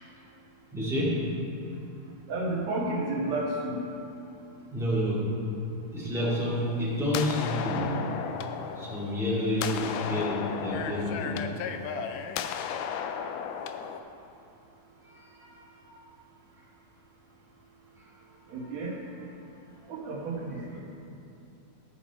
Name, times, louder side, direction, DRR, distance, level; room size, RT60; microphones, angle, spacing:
voice 1, 0.7-1.3 4.7-5.3 5.9-11.4 12.0-12.2 12.9-13.3 13.6-13.7 15.0-16.0 16.5-16.6 18.0-18.1 18.5-19.5 20.5-20.8, left 1 dB, ahead, -9 dB, 1.5 m, -31 dB
voice 2, 2.3-3.8 18.5-18.9 19.9-20.9, right 2 dB, 60° right, -3 dB, 2.5 m, -31 dB
sound 1, 6.2-14.0, left 7 dB, 85° left, 2.0 m, -35 dB
14.0 x 6.1 x 4.3 m, 2.7 s
omnidirectional pair, 3.7 m